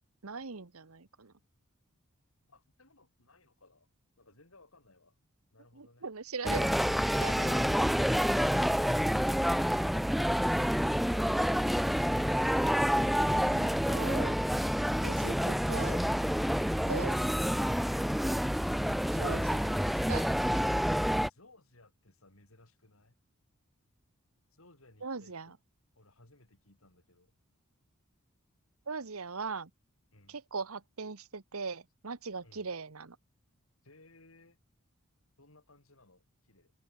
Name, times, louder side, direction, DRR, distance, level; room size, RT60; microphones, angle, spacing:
voice 1, 0.2-1.3 5.8-6.7 7.2-7.7 13.3-14.4 15.0-16.0 16.9-17.2 19.1-20.3 25.0-25.5 28.9-29.7 30.3-33.2, right 4 dB, 80° right, 1.2 m, -40 dB
voice 2, 2.5-3.9 4.2-5.2 5.5-6.1 21.2-23.1 24.5-25.5 26.0-27.3 30.1-30.4 32.4-32.7 33.8-34.6 35.4-36.7, left 2 dB, 70° left, 5.2 m, -61 dB
sound 1, 6.4-21.3, equal, ahead, 0.3 m, -28 dB
head